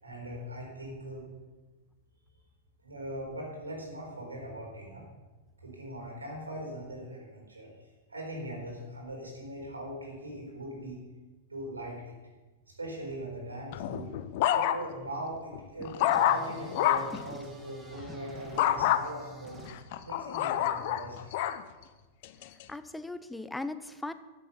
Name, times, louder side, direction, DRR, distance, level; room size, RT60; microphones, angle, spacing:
voice 1, 0.0-1.3 2.8-5.0 5.6-7.7 8.1-11.0 11.5-12.1 12.8-14.1 14.5-19.6 20.0-21.5, right 1 dB, 90° right, -1 dB, 4.5 m, -40 dB
sound 1, 13.7-15.1 15.5-17.2 18.6-19.0 19.7-21.6 22.2-22.6, left 12 dB, 55° left, 0.7 m, -28 dB
sound 2, 16.1-19.7, right 1 dB, 10° right, 2.2 m, -47 dB
voice 2, 22.7-24.1, left 2 dB, 5° left, 12 dB, 0.6 m, -39 dB
14.0 x 7.9 x 5.7 m, 1.2 s
hypercardioid pair, 100°, 0 cm